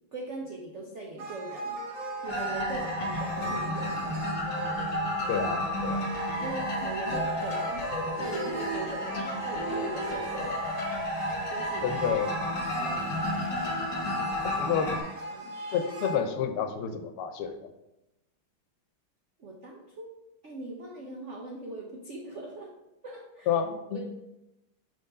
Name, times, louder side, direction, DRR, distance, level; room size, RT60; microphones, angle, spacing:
voice 1, 0.1-1.8 2.2-4.2 6.4-7.9 8.2-10.6 11.5-11.9 12.8-13.2 14.6-14.8 15.3-15.5 19.4-20.1 20.4-22.7 23.0-23.5 23.9-24.1, right 2 dB, 90° right, -1 dB, 0.6 m, -40 dB
sound 1, 1.2-16.2, right 2 dB, 55° right, 1.0 m, -38 dB
sound 2, 2.3-15.0, left 1 dB, 45° left, 1.4 m, -32 dB
voice 2, 5.3-6.1 11.8-12.4 14.4-14.9 15.7-17.7 23.5-24.0, left 7 dB, 90° left, 8 dB, 1.6 m, -30 dB
5.0 x 3.8 x 5.3 m, 0.92 s
omnidirectional pair, 2.4 m